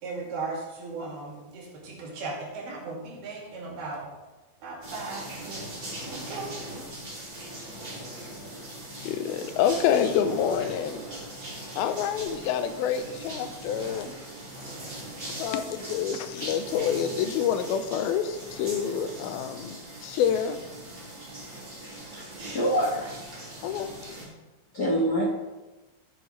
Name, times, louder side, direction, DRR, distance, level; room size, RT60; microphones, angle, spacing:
voice 1, 0.0-4.1 4.6-5.8 6.1-6.6, right 3 dB, 90° right, -3 dB, 4.1 m, -37 dB
sound 1, 4.8-24.2, right 1 dB, 25° right, 2.5 m, -40 dB
voice 2, 9.0-11.0 11.8-14.2 15.4-19.8 20.0-20.6 23.6-23.9, left 8 dB, 90° left, 9 dB, 2.5 m, -27 dB
voice 3, 22.1-23.2 24.7-25.2, equal, 70° left, -5 dB, 0.9 m, -26 dB
13.5 x 7.9 x 3.2 m, 1.1 s
omnidirectional pair, 4.3 m